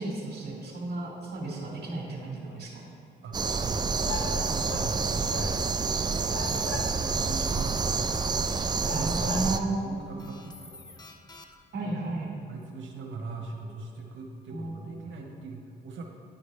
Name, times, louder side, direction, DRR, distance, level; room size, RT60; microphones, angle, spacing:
voice 1, 0.0-2.8 8.9-9.9 11.7-12.3 14.5-15.0, right 2 dB, 55° right, -2 dB, 1.6 m, -33 dB
sound 1, 2.5-2.6 4.0-5.0 5.3-5.9 6.3-7.2 8.0-8.1 8.8-9.6, left 4 dB, 85° left, 0.7 m, -38 dB
voice 2, 3.2-8.0 8.4-10.8 11.8-12.0 12.5-16.0, right 3 dB, 70° right, 1 dB, 1.1 m, -41 dB
sound 2, 3.3-9.6, right 4 dB, 20° right, 0.3 m, -28 dB
sound 3, 5.9-6.0 6.5-6.9 7.4-7.8 8.1-8.7 9.1-9.6 10.2-11.8, left 2 dB, 20° left, 0.6 m, -50 dB
10.5 x 5.0 x 3.2 m, 2.6 s
cardioid pair, 90°, 20 cm